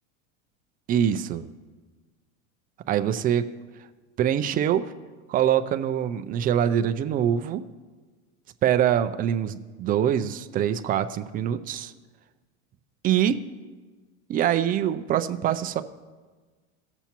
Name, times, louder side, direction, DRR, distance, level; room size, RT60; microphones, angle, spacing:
voice 1, 0.9-1.5 2.9-3.4 4.2-4.9 5.3-7.7 8.6-11.9 13.0-13.4 14.3-15.8, right 10 dB, 25° right, 10 dB, 0.3 m, -24 dB
17.5 x 6.9 x 2.9 m, 1.4 s
supercardioid pair, 135°, 37 cm